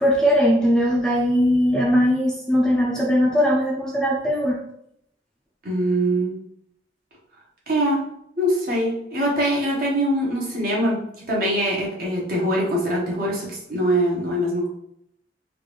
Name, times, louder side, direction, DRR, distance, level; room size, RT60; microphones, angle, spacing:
voice 1, 0.0-4.6, equal, 5° left, -3 dB, 0.5 m, -19 dB
voice 2, 5.6-6.3 7.7-8.0 8.4-11.0 11.3-14.7, equal, 55° right, -3 dB, 1.2 m, -23 dB
3.9 x 2.5 x 3.1 m, 0.74 s
head